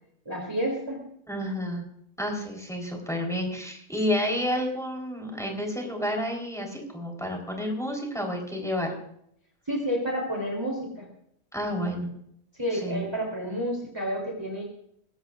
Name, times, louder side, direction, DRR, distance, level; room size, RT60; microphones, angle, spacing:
voice 1, 0.2-1.0 9.7-11.1 12.6-14.6, equal, 15° right, -1 dB, 3.2 m, -30 dB
voice 2, 1.3-1.8 2.2-8.9 11.5-12.1 12.8-13.0, equal, ahead, 1 dB, 3.8 m, -30 dB
21.0 x 16.0 x 2.5 m, 0.70 s
omnidirectional pair, 1.5 m